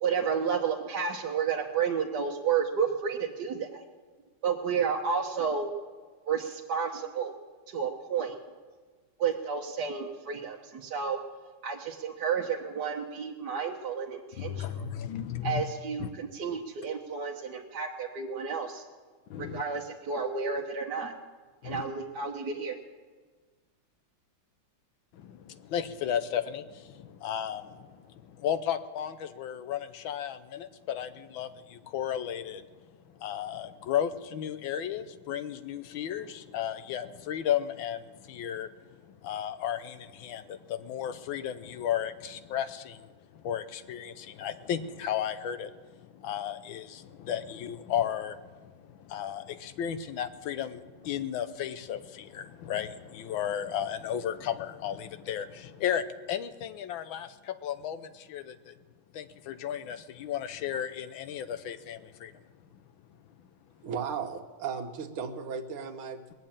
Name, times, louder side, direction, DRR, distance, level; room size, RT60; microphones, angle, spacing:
voice 1, 0.0-3.8 4.4-5.7 6.3-7.3 7.7-8.3 9.2-11.2 11.6-14.9 15.4-18.8 19.4-21.1 21.6-22.8, right 6 dB, 60° right, 0 dB, 1.4 m, -31 dB
voice 2, 14.4-15.6 16.0-16.1 19.3-19.6 21.6-21.8 25.1-32.7 33.2-38.7 39.0-58.7 59.1-62.4, left 9 dB, 75° left, 11 dB, 1.5 m, -34 dB
voice 3, 63.8-66.3, right 6 dB, 85° right, 5 dB, 1.9 m, -36 dB
20.5 x 7.6 x 8.8 m, 1.4 s
omnidirectional pair, 2.3 m